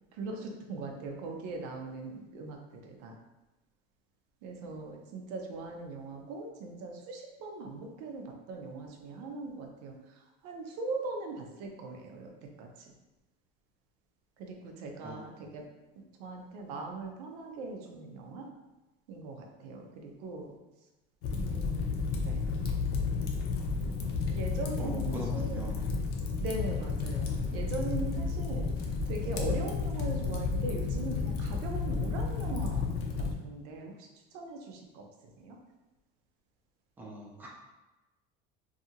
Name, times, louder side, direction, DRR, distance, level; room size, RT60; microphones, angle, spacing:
voice 1, 0.1-3.2 4.4-12.9 14.4-15.7 16.2-18.5 19.1-20.5 21.3-22.5 24.3-25.8 26.4-35.1 35.4-35.6, right 3 dB, 85° right, 2 dB, 0.6 m, -40 dB
Fire, 21.2-33.3, left 4 dB, 55° left, 0.5 m, -32 dB
voice 2, 24.8-25.8 37.0-37.5, equal, 10° right, -3 dB, 0.4 m, -41 dB
2.7 x 2.4 x 2.7 m, 1.0 s
cardioid pair, 160°, 20 cm